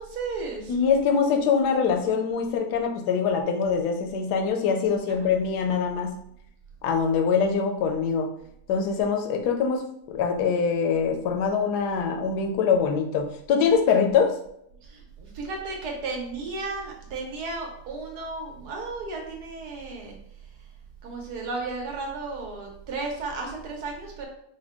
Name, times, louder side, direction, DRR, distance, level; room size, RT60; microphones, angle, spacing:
voice 1, 0.0-0.7 5.1-5.2 14.9-20.2 21.0-24.3, right 3 dB, 75° right, 1 dB, 1.5 m, -34 dB
voice 2, 0.7-6.2 6.8-8.3 8.7-9.8 10.1-14.3, left 6 dB, 80° left, 3 dB, 1.2 m, -23 dB
4.3 x 2.2 x 3.6 m, 0.73 s
omnidirectional pair, 1.7 m